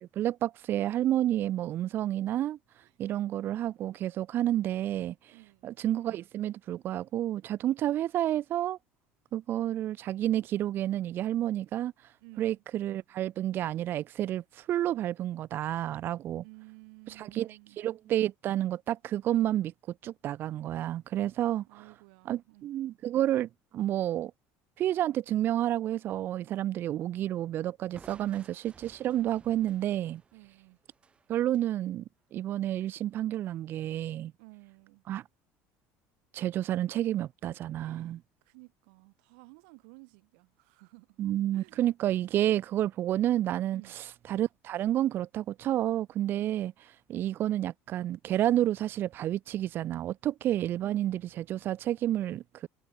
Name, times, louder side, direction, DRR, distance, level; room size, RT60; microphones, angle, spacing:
voice 1, 0.0-2.6 3.0-5.1 5.6-8.8 9.3-11.9 12.4-16.4 17.2-17.5 17.8-19.7 20.0-21.7 22.3-24.3 24.8-30.2 31.3-32.0 32.3-34.3 35.1-35.2 36.3-38.2 41.2-43.8 44.3-46.7 47.1-52.7, right 12 dB, 45° right, 0.4 m, -30 dB
voice 2, 5.3-5.7 12.2-12.6 16.4-17.8 21.7-22.7 28.2-28.4 30.3-30.8 34.4-35.0 37.7-41.2 41.5-41.8 43.7-44.0 46.4-46.6 50.8-51.3, right 37 dB, 85° right, 5.1 m, -54 dB
Crushing, 27.9-31.7, right 5 dB, 20° right, 1.1 m, -56 dB
cardioid pair, 135°, 5 cm